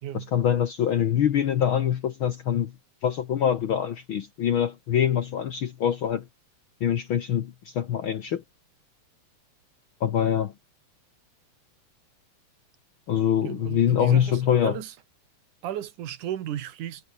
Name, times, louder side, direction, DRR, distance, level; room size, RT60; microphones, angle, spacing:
voice 1, 0.1-2.7 3.0-6.2 6.8-8.4 10.0-10.5 13.1-14.8, left 9 dB, 60° left, 1.4 m, -24 dB
voice 2, 13.4-14.9 15.6-17.1, right 11 dB, 80° right, 3.0 m, -34 dB
omnidirectional pair, 3.6 m